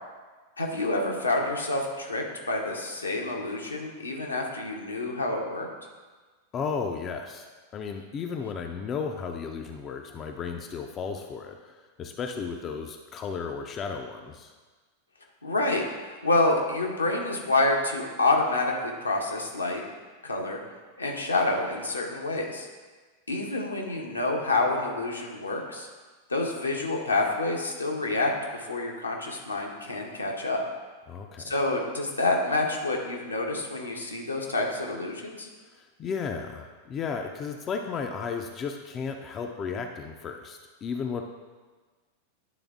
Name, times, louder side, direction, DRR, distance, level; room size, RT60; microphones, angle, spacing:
voice 1, 0.6-5.7 15.4-19.8 20.2-20.6 21.0-22.7 23.3-25.9 26.3-30.6 31.4-35.5, left 2 dB, 80° left, 0 dB, 0.9 m, -28 dB
voice 2, 6.5-14.5 31.1-31.5 35.7-41.2, left 5 dB, 30° left, 4 dB, 0.4 m, -34 dB
9.3 x 3.5 x 3.5 m, 1.3 s
figure-of-eight pair, 90°, 0 cm